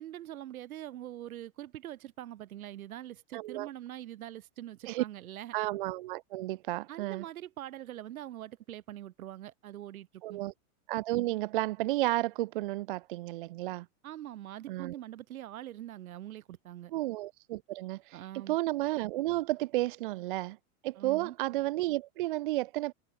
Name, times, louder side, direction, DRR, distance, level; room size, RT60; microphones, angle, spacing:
voice 1, 0.0-5.5 6.9-10.4 14.0-16.9 18.1-18.6 21.0-21.4, right 13 dB, 75° right, 3.6 m, -43 dB
voice 2, 3.3-3.7 4.9-5.0 5.5-7.2 10.2-10.5 10.9-13.9 14.7-14.9 16.9-18.2 18.5-20.6 20.8-22.9, right 17 dB, 40° right, 0.6 m, -32 dB
supercardioid pair, 170°, 43 cm